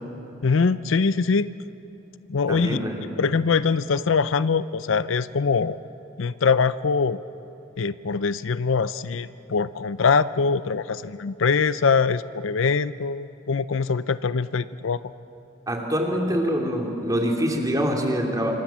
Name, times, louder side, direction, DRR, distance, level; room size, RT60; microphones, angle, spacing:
voice 1, 0.4-1.5 2.3-2.8 3.2-5.8 6.2-7.2 7.8-15.0, left 5 dB, 70° left, 15 dB, 0.5 m, -23 dB
voice 2, 2.5-3.0 15.7-18.5, equal, 15° right, 1 dB, 2.9 m, -25 dB
26.5 x 25.0 x 7.4 m, 2.9 s
head